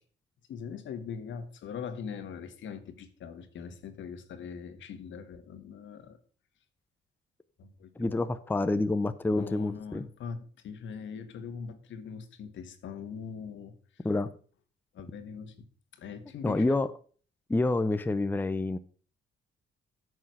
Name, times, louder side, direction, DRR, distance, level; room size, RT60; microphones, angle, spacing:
voice 1, 0.5-6.2 7.6-8.6 9.3-13.7 14.9-15.7 15.9-16.8, left 6 dB, 70° left, 9 dB, 1.5 m, -42 dB
voice 2, 8.0-10.1 14.0-14.3 16.4-16.9 17.5-18.8, left 2 dB, 10° left, 12 dB, 0.6 m, -28 dB
9.5 x 6.3 x 6.1 m, 0.43 s
cardioid pair, 90°, 20 cm